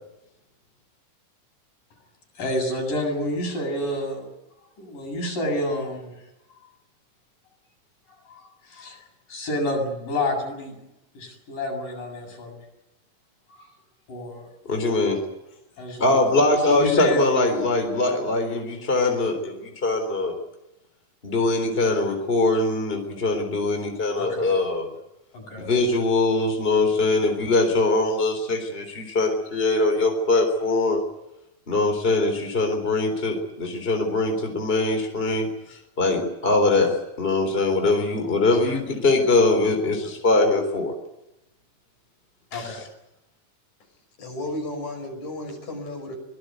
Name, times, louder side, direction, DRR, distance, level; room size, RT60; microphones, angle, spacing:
voice 1, 2.4-4.3 4.8-6.1 8.3-9.0 9.3-10.7 11.1-12.6 13.6-13.7 14.1-14.5 15.8-16.2 16.7-17.2 24.2-24.5 25.3-25.7 38.5-38.8 42.5-42.8, left 1 dB, 85° left, 1 dB, 9.1 m, -29 dB
voice 2, 14.7-15.2 16.0-20.3 21.2-24.9 25.6-31.0 31.7-40.9 42.5-42.7, left 2 dB, 15° left, 5 dB, 3.8 m, -22 dB
voice 3, 44.2-46.2, left 1 dB, 60° left, 3 dB, 7.5 m, -33 dB
25.0 x 19.0 x 9.4 m, 0.90 s
omnidirectional pair, 3.7 m